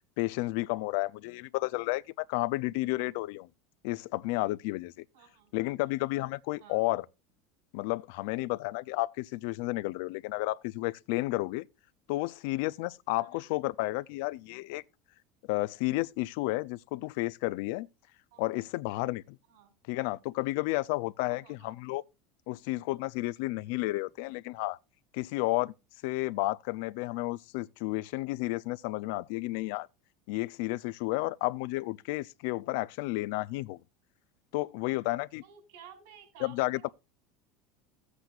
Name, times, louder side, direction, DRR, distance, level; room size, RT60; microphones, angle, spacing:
voice 1, 0.2-3.5 3.8-4.9 5.5-7.1 7.7-11.7 12.1-14.8 15.5-17.9 18.4-19.4 19.9-22.0 22.5-24.8 25.1-25.7 26.0-29.9 30.3-33.8 34.5-35.4 36.4-36.9, left 20 dB, 65° left, 0.4 m, -32 dB
voice 2, 5.1-5.5 6.6-6.8 13.2-13.5 18.3-18.5 19.5-19.8 21.3-21.8 35.4-36.9, right 8 dB, 70° right, 4.8 m, -54 dB
16.5 x 8.2 x 2.4 m
supercardioid pair, 160°, 0 cm